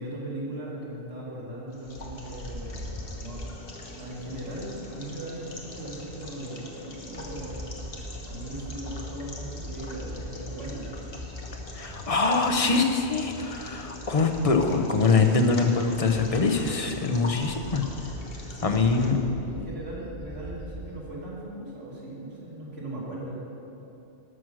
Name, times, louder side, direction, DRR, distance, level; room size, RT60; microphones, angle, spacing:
voice 1, 0.0-3.6 3.9-7.6 8.2-10.9 18.4-23.3, right 1 dB, 80° right, -7 dB, 3.0 m, -38 dB
sound 1, 1.7-19.1, left 2 dB, 55° left, 1.4 m, -43 dB
Bird, 1.8-6.3 6.7-20.9, equal, 45° right, 2.2 m, -42 dB
voice 2, 11.7-17.9 18.6-19.2, left 4 dB, 35° left, 5 dB, 0.7 m, -23 dB
12.5 x 6.1 x 6.3 m, 2.9 s
omnidirectional pair, 1.2 m